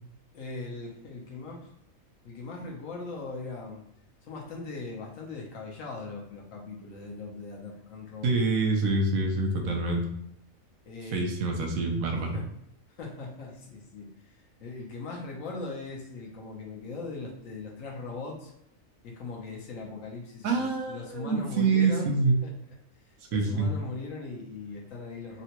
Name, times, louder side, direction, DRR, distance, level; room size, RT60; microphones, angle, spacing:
voice 1, 0.3-1.7 2.2-3.8 4.2-8.4 10.9-11.3 12.3-12.5 13.0-18.5 19.0-22.1 22.4-22.5 23.0-25.4, left 3 dB, 70° left, -1 dB, 1.1 m, -40 dB
voice 2, 8.2-10.0 11.1-12.4 20.4-22.4 23.3-23.7, right 3 dB, 80° right, 2 dB, 1.1 m, -26 dB
3.8 x 2.1 x 2.8 m, 0.77 s
omnidirectional pair, 1.4 m